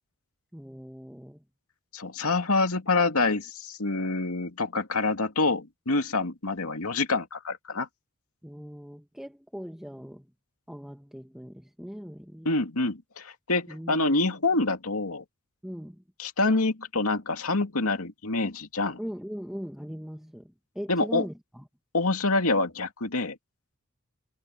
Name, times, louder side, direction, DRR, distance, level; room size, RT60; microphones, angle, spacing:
voice 1, 0.5-1.4 8.4-10.3 10.7-12.5 13.7-14.0 15.6-16.0 19.0-21.6, equal, ahead, 1.5 m, -40 dB
voice 2, 1.9-7.9 12.4-15.2 16.2-19.0 20.9-21.3 21.9-23.4, left 3 dB, 85° left, 2.5 m, -26 dB
head